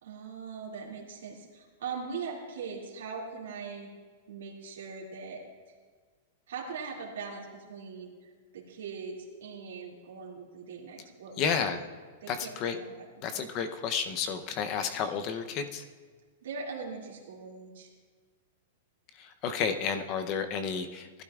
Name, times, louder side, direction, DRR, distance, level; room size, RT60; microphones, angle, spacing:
voice 1, 0.0-3.9 4.3-5.4 5.7-5.8 6.5-11.6 12.2-13.1 13.3-13.4 16.4-17.9, right 5 dB, 85° right, -3 dB, 2.3 m, -41 dB
voice 2, 11.4-11.8 12.3-12.8 13.2-15.8 19.1-21.2, left 6 dB, 30° left, 9 dB, 0.7 m, -31 dB
19.0 x 12.0 x 2.4 m, 1.5 s
supercardioid pair, 165°, 0 cm